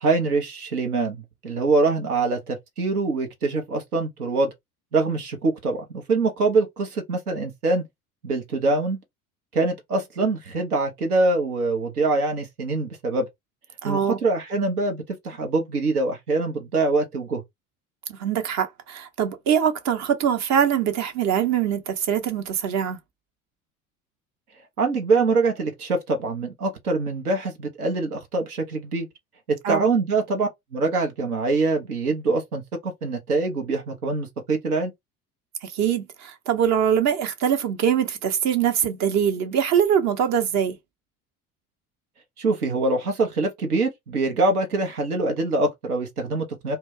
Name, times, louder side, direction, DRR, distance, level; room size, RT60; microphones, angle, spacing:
voice 1, 0.0-4.5 4.9-7.8 8.2-9.0 9.5-13.3 13.8-17.4 24.8-29.1 29.5-34.9 42.4-46.8, right 3 dB, 80° right, 0.8 m, -24 dB
voice 2, 13.8-14.2 18.1-23.0 29.6-29.8 35.6-40.7, right 8 dB, 40° right, 0.8 m, -23 dB
2.2 x 2.2 x 3.4 m
figure-of-eight pair, 65°, 44 cm